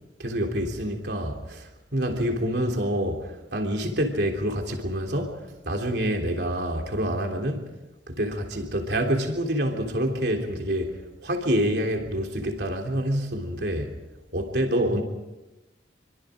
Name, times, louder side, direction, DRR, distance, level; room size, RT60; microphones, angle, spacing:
voice 1, 0.2-1.6 1.9-5.4 5.7-7.7 8.1-10.9 11.2-13.9 14.3-15.0, equal, 65° right, 3.3 m, -27 dB
27.5 x 24.5 x 5.1 m
head